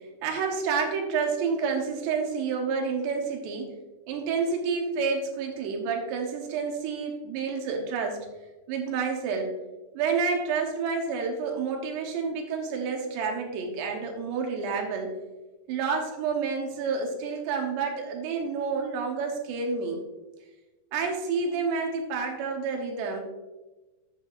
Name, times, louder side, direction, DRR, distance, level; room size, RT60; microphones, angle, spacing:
voice 1, 0.2-3.7 4.1-8.3 8.7-9.5 9.9-15.2 15.7-20.0 20.9-23.2, right 5 dB, 75° right, 2 dB, 3.1 m, -29 dB
11.0 x 8.4 x 2.5 m, 1.1 s
omnidirectional pair, 5.2 m